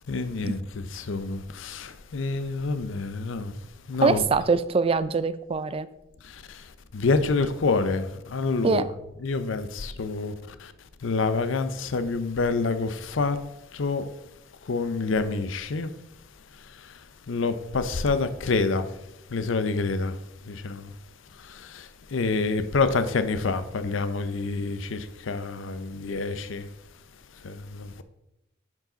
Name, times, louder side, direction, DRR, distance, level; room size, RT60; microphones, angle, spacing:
voice 1, 0.1-3.5 3.9-4.2 6.3-6.6 6.9-8.8 9.2-10.7 11.0-13.4 13.7-14.1 14.7-15.9 17.3-18.9 19.3-20.1 20.5-20.9 21.5-26.7 27.4-28.0, left 3 dB, 75° left, 0.6 m, -27 dB
voice 2, 4.0-5.9 8.6-8.9, right 4 dB, 30° right, 0.3 m, -23 dB
9.6 x 4.9 x 3.9 m
head